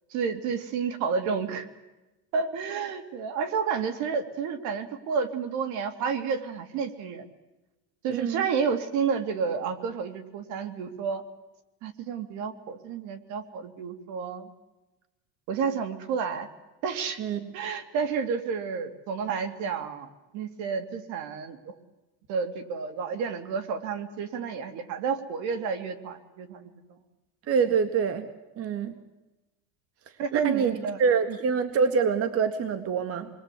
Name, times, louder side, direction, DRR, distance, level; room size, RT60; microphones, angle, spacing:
voice 1, 0.1-1.7 2.3-7.2 8.0-11.2 11.8-14.5 15.5-16.5 16.8-17.2 17.5-21.7 22.3-27.0 30.2-31.0 31.3-31.4, right 6 dB, 70° right, 9 dB, 2.6 m, -30 dB
voice 2, 8.1-8.4 17.2-17.4 27.5-28.3 28.6-28.9 30.3-33.3, right 6 dB, 50° right, 9 dB, 2.0 m, -25 dB
28.0 x 22.0 x 8.4 m, 1.1 s
supercardioid pair, 110°, 30 cm